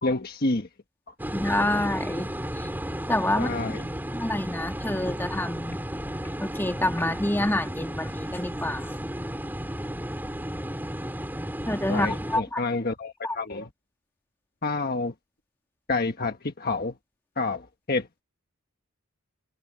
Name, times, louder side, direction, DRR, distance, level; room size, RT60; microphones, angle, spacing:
voice 1, 0.0-0.7 3.3-3.8 11.9-13.7 14.6-15.1 15.9-16.9 17.4-18.2, left 3 dB, 40° left, 1.4 m, -28 dB
sound 1, 1.2-12.4, equal, 10° right, 6.4 m, -33 dB
voice 2, 1.3-2.3 2.6-2.7 3.1-3.8 4.1-5.8 6.4-8.9 11.7-12.6 13.2-13.4, left 1 dB, 10° left, 2.5 m, -27 dB
head